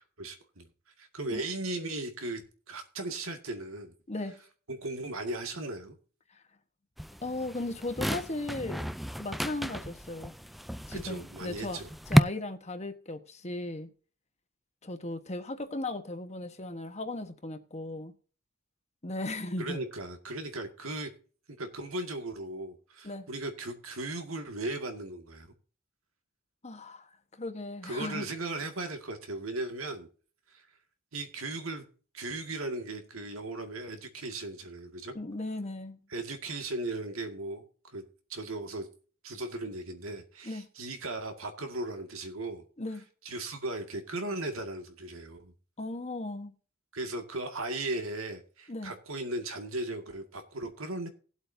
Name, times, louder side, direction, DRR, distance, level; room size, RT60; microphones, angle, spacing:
voice 1, 0.2-0.7 1.0-3.9 4.7-6.0 10.9-11.8 19.6-21.1 21.5-25.5 27.8-30.1 30.5-30.7 31.1-31.9 32.1-35.1 36.1-38.0 38.3-38.9 39.2-42.6 43.2-45.5 46.9-51.1, right 2 dB, 80° right, 2.1 m, -37 dB
sound 1, 7.0-12.2, equal, ahead, 0.4 m, -31 dB
voice 2, 7.2-8.9 9.2-10.3 10.9-11.8 12.1-13.9 14.8-18.1 19.0-19.8 23.0-23.3 26.6-28.3 35.1-36.0 40.4-40.7 42.8-43.0 45.8-46.5 48.7-48.9, left 2 dB, 30° left, 1.3 m, -37 dB
19.0 x 8.1 x 2.7 m
head